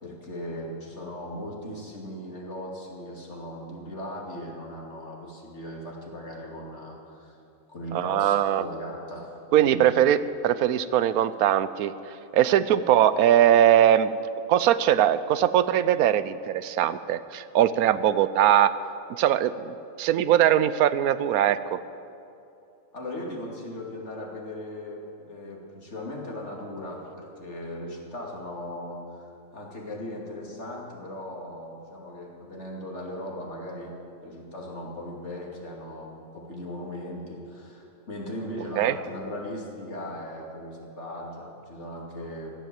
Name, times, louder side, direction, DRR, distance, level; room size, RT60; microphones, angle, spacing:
voice 1, 0.0-7.4 7.7-9.3 9.6-9.9 22.9-33.9 34.2-42.5, left 1 dB, 55° left, -2 dB, 2.8 m, -38 dB
voice 2, 7.9-8.6 9.5-11.9 12.3-14.1 14.5-18.7 19.1-21.8 38.8-39.0, right 11 dB, 85° right, 15 dB, 1.1 m, -21 dB
16.0 x 11.5 x 7.6 m, 2.6 s
omnidirectional pair, 1.5 m